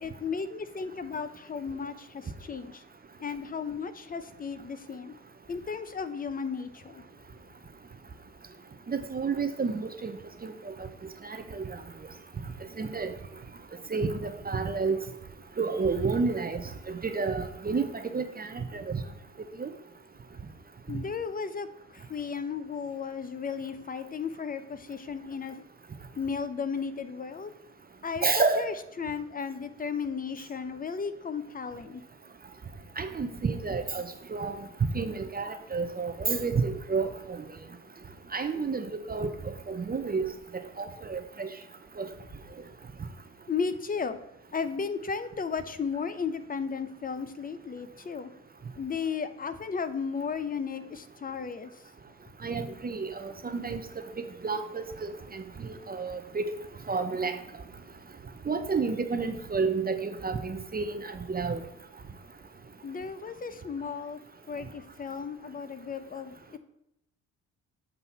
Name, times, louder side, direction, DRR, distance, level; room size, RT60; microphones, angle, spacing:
voice 1, 0.0-2.8 3.2-5.1 5.5-7.0 20.9-21.7 21.9-25.6 26.2-27.5 28.0-32.0 43.5-44.2 44.5-48.3 48.7-51.7 62.8-64.2 64.5-66.6, left 5 dB, 25° left, 11 dB, 0.7 m, -34 dB
voice 2, 8.9-10.1 10.4-10.7 11.2-11.8 12.8-13.1 13.9-15.0 15.6-19.0 19.6-19.7 28.2-28.6 33.0-34.6 34.9-37.4 38.3-40.3 40.5-41.5 42.0-42.1 52.4-53.8 54.2-56.5 56.9-57.4 58.5-61.6, right 4 dB, 25° right, 7 dB, 0.7 m, -30 dB
7.4 x 2.7 x 5.6 m, 0.81 s
hypercardioid pair, 50°, 35 cm